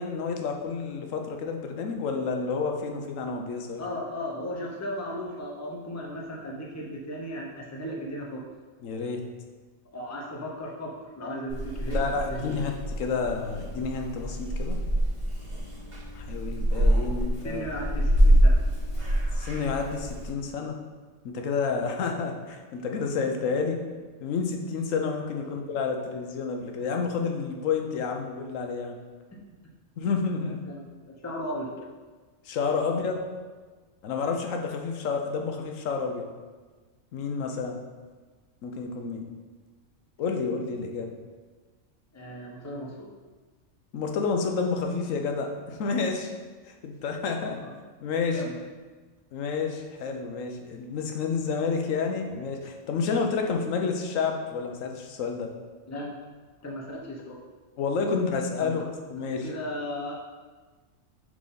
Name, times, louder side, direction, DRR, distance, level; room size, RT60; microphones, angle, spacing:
voice 1, 0.0-3.8 8.8-9.2 11.9-14.8 16.1-17.7 19.4-20.8 21.2-23.8 24.2-29.0 30.0-30.6 32.4-33.2 34.0-36.3 37.1-37.8 38.6-39.2 40.2-41.1 43.9-46.3 46.7-47.6 48.0-48.5 49.3-55.5 57.8-58.8 59.1-59.4, left 5 dB, 85° left, 3 dB, 1.1 m, -30 dB
voice 2, 3.8-8.4 9.9-12.5 17.4-18.6 25.4-25.6 30.4-31.7 32.9-33.0 42.1-43.1 47.6-47.7 48.3-48.5 55.9-56.2 56.6-57.4 58.6-58.8 59.2-60.1, equal, 15° left, -2 dB, 0.6 m, -36 dB
Purr / Meow, 11.5-20.3, equal, 35° right, 1.9 m, -25 dB
6.0 x 4.0 x 3.9 m, 1.4 s
omnidirectional pair, 1.3 m